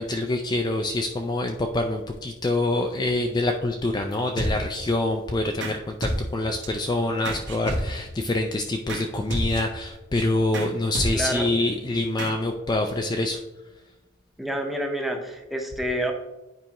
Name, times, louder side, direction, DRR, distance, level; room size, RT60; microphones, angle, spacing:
voice 1, 0.0-13.4, left 2 dB, 20° left, 3 dB, 0.3 m, -26 dB
sound 1, 4.4-4.9 5.6-5.8 6.0-6.7 7.3-8.2 8.9-9.0 9.3-9.8 10.1-10.2 10.5-10.7 10.9-11.5 12.2-12.3, right 1 dB, 60° right, 1.3 m, -30 dB
voice 2, 11.1-11.5 14.4-16.1, equal, ahead, 2 dB, 0.7 m, -28 dB
9.3 x 4.7 x 2.9 m, 1.0 s
head